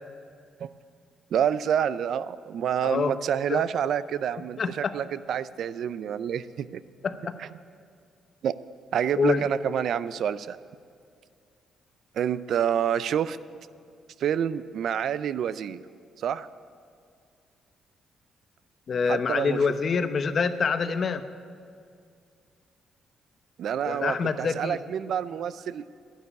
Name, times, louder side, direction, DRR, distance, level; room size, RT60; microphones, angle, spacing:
voice 1, 1.3-6.8 7.4-7.5 8.4-8.5 8.9-10.6 12.1-13.4 14.2-15.8 16.2-16.5 19.1-19.6 23.6-25.8, right 9 dB, 70° right, 15 dB, 0.4 m, -28 dB
voice 2, 2.8-3.1 3.5-3.6 4.6-4.9 7.0-7.4 9.1-9.4 18.9-21.2 23.8-24.8, left 5 dB, 50° left, 10 dB, 0.8 m, -26 dB
11.5 x 9.5 x 9.8 m, 2.3 s
cardioid pair, 90°, 0 cm